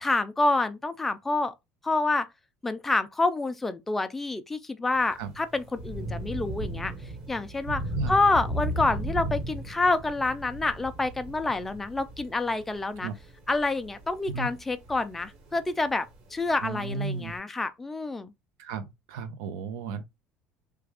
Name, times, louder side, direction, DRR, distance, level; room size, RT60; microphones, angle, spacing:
voice 1, 0.0-1.5 1.8-2.3 2.6-6.9 7.3-7.8 8.1-13.1 13.5-16.1 16.3-18.3, left 3 dB, 10° left, 0.3 m, -27 dB
Thunder / Rain, 4.9-17.4, right 1 dB, 40° right, 1.3 m, -37 dB
voice 2, 16.6-17.3 18.6-20.0, right 5 dB, 90° right, 0.8 m, -34 dB
3.3 x 2.4 x 3.3 m
cardioid pair, 160°, 2 cm